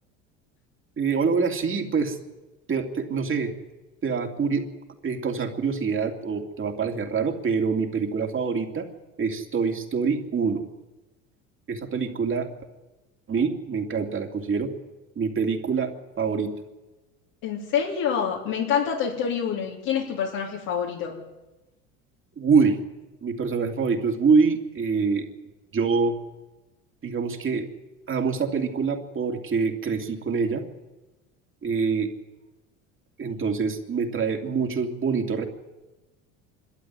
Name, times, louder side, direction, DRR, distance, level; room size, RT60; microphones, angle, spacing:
voice 1, 1.0-2.2 2.7-3.5 4.0-4.7 5.0-8.9 9.2-10.6 11.7-12.5 13.3-14.7 15.2-16.5 22.4-22.8 23.2-25.3 25.7-26.2 27.0-27.7 28.1-30.6 31.6-32.1 33.2-35.5, right 5 dB, 35° right, 4 dB, 2.9 m, -25 dB
voice 2, 17.4-21.2, left 7 dB, 65° left, -1 dB, 3.2 m, -27 dB
25.5 x 13.0 x 9.6 m, 1.1 s
supercardioid pair, 90°, 37 cm